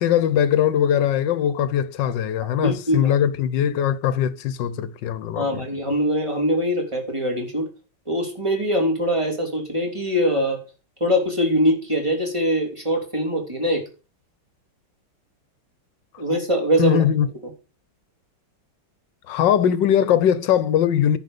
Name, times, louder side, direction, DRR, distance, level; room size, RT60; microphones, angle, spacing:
voice 1, 0.0-5.6 16.8-17.3 19.3-21.2, left 9 dB, 70° left, 1.4 m, -20 dB
voice 2, 2.6-3.2 5.4-7.7 8.1-10.6 11.0-13.8 16.2-17.0, equal, 15° right, 3.0 m, -22 dB
10.5 x 5.6 x 6.8 m
omnidirectional pair, 2.1 m